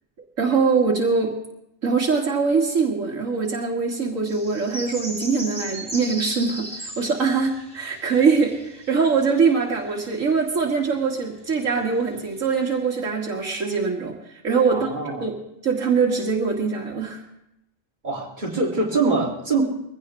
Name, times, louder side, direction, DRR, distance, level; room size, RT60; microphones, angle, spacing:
voice 1, 0.4-1.4 1.8-14.9 15.2-15.4 15.6-17.2, right 5 dB, 80° right, -1 dB, 2.2 m, -22 dB
sound 1, 4.3-10.0 10.7-10.8 11.6-11.8 12.1-12.7, right 1 dB, 5° left, 4.7 m, -37 dB
voice 2, 14.7-15.3 18.0-19.6, right 3 dB, 35° right, -3 dB, 2.9 m, -24 dB
22.0 x 16.5 x 3.2 m, 0.83 s
omnidirectional pair, 1.3 m